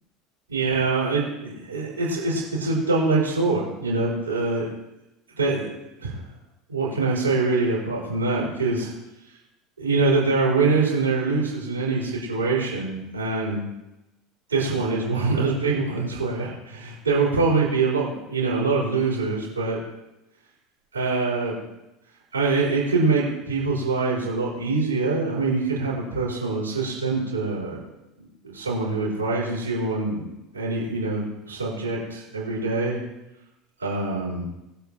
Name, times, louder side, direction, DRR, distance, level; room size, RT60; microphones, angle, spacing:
voice 1, 0.5-4.7 5.4-5.7 6.0-6.2 6.7-8.9 9.8-13.6 14.5-19.8 20.9-21.5 22.3-27.8 28.4-30.2 30.5-33.0 33.8-34.4, right 3 dB, 80° right, -5 dB, 4.3 m, -24 dB
20.0 x 8.1 x 3.0 m, 0.95 s
figure-of-eight pair, 70°, 0 cm